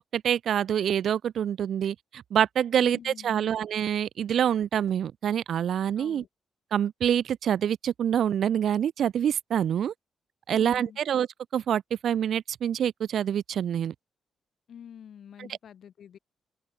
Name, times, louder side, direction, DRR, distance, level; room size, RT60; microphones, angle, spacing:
voice 1, 0.0-6.2 6.7-9.9 10.5-11.3 11.5-13.9, right 9 dB, 60° right, 0.5 m, -26 dB
voice 2, 2.7-3.5 6.0-6.3 10.5-11.0 14.7-16.2, left 8 dB, 55° left, 2.8 m, -46 dB
open air
wide cardioid pair, 175°, 0 cm